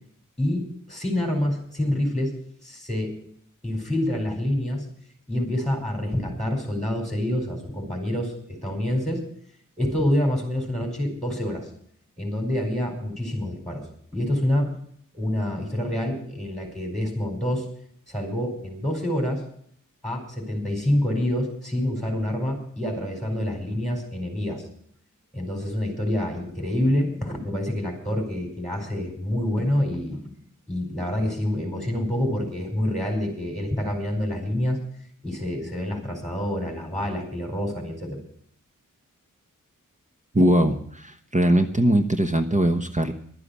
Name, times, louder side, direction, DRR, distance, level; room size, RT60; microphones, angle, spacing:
voice 1, 0.4-2.3 2.6-3.1 3.6-4.8 5.3-9.2 9.8-11.7 12.2-13.9 14.1-14.7 15.1-17.7 18.1-19.4 20.0-24.6 25.3-30.2 30.7-34.8 35.2-38.2, left 1 dB, ahead, 2 dB, 4.8 m, -27 dB
voice 2, 40.3-43.1, right 1 dB, 25° right, 6 dB, 1.2 m, -21 dB
11.5 x 9.9 x 8.2 m, 0.63 s
wide cardioid pair, 70°, 32 cm